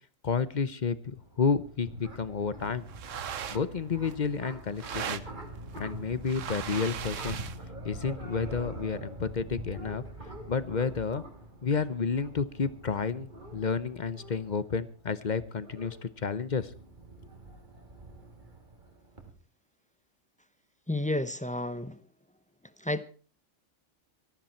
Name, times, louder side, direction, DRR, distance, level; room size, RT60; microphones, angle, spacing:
voice 1, 0.2-2.9 3.5-5.2 5.8-7.4 7.8-10.0 10.5-11.2 11.6-16.7, left 5 dB, 40° left, 0.8 m, -31 dB
sound 1, 1.2-19.3, right 1 dB, 40° right, 2.8 m, -45 dB
sound 2, 2.6-7.7, right 8 dB, 80° right, 1.3 m, -40 dB
voice 2, 20.9-22.0 22.8-23.0, left 1 dB, 10° left, 0.6 m, -31 dB
18.5 x 13.5 x 4.4 m
omnidirectional pair, 1.3 m